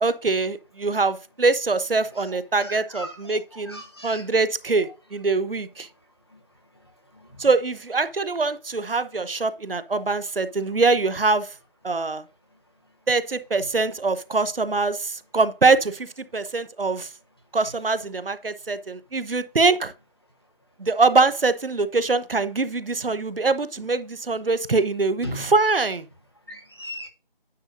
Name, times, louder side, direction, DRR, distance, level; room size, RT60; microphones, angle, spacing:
voice 1, 0.0-5.9 7.4-11.5 11.8-12.2 13.1-17.1 17.5-19.9 20.8-26.1, right 3 dB, 75° right, 0.9 m, -23 dB
voice 2, 2.6-3.4 3.7-4.2 25.2-25.5 26.5-27.1, left 1 dB, 25° left, 1.1 m, -36 dB
9.6 x 6.6 x 2.6 m
figure-of-eight pair, 180°, 29 cm